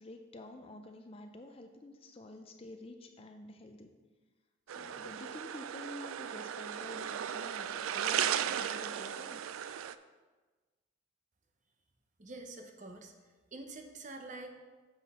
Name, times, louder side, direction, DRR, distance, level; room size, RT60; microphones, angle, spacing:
voice 1, 0.0-4.0 4.7-9.6, left 1 dB, 30° left, 6 dB, 0.5 m, -49 dB
sound 1, 4.7-9.9, right 9 dB, 85° right, 0.3 m, -36 dB
voice 2, 12.2-14.5, right 2 dB, 35° right, 4 dB, 0.7 m, -47 dB
7.3 x 6.1 x 4.2 m, 1.3 s
head